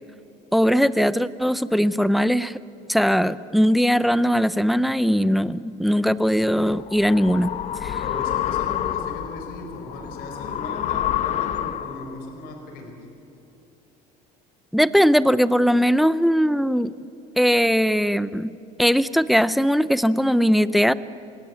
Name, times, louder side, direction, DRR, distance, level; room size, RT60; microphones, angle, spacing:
voice 1, 0.5-2.6 2.9-7.5 7.8-8.0 14.7-16.9 17.4-18.5 18.8-20.9, equal, ahead, 16 dB, 0.6 m, -20 dB
sound 1, 6.4-12.2, left 11 dB, 45° left, 1.0 m, -28 dB
voice 2, 8.0-13.0, left 2 dB, 75° left, 3 dB, 5.0 m, -37 dB
28.0 x 16.5 x 8.3 m, 2.9 s
cardioid pair, 130°, 16 cm